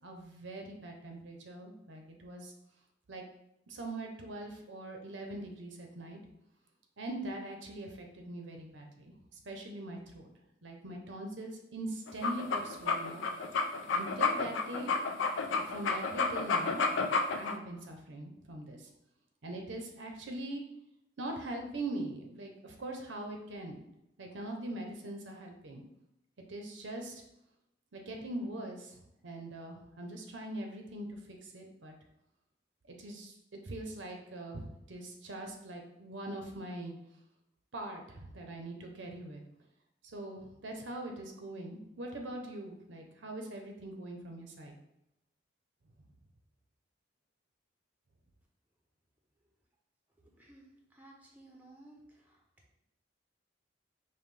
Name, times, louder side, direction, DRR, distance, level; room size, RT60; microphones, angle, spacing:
voice 1, 0.0-2.5 3.1-3.2 3.7-6.2 7.0-10.3 10.6-13.2 13.9-14.9 15.7-16.8 17.3-18.9 19.4-20.6 21.2-23.8 24.2-25.8 26.5-27.2 27.9-29.0 29.2-31.9 32.9-36.9 37.7-39.4 40.1-44.7, right 1 dB, 75° right, 2 dB, 0.7 m, -42 dB
sound 1, 12.1-17.5, left 4 dB, 80° left, 0.4 m, -31 dB
voice 2, 50.9-52.0, right 2 dB, 10° right, -2 dB, 0.7 m, -55 dB
5.3 x 2.2 x 3.2 m, 0.83 s
head